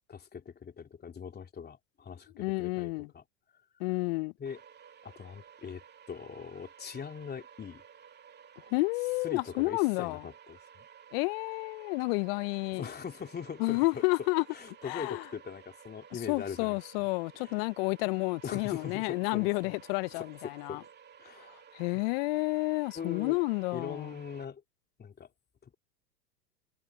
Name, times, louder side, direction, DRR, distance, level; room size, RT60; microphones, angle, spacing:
voice 1, 0.1-3.2 4.4-4.6 5.0-7.8 9.2-10.9 12.7-13.8 14.5-17.1 17.4-17.6 18.4-19.7 20.1-20.8 21.2-21.6 22.9-23.4 23.7-24.6 25.0-25.3 25.6-25.7, left 7 dB, 20° left, 3.2 m, -41 dB
voice 2, 2.4-3.1 3.8-4.3 8.7-10.2 11.1-12.8 13.6-14.4 14.8-15.2 16.3-20.8 21.7-24.2, left 28 dB, 40° left, 0.5 m, -30 dB
sound 1, 4.5-24.5, right 8 dB, 20° right, 2.4 m, -55 dB
hypercardioid pair, 105°, 49 cm